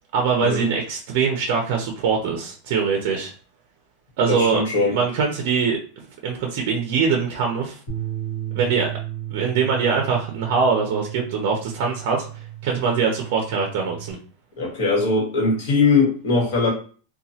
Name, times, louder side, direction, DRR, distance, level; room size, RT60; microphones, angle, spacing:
voice 1, 0.1-3.3 4.2-4.6 4.9-5.8 6.2-7.8 8.5-8.9 9.3-12.3 12.6-14.2, right 5 dB, 45° right, 1 dB, 0.5 m, -22 dB
voice 2, 4.3-4.9 14.6-16.7, left 3 dB, 55° left, -1 dB, 1.2 m, -20 dB
sound 1, 7.9-14.1, right 12 dB, 35° left, 1.3 m, -34 dB
2.9 x 2.2 x 2.7 m, 0.41 s
supercardioid pair, 180°, 0 cm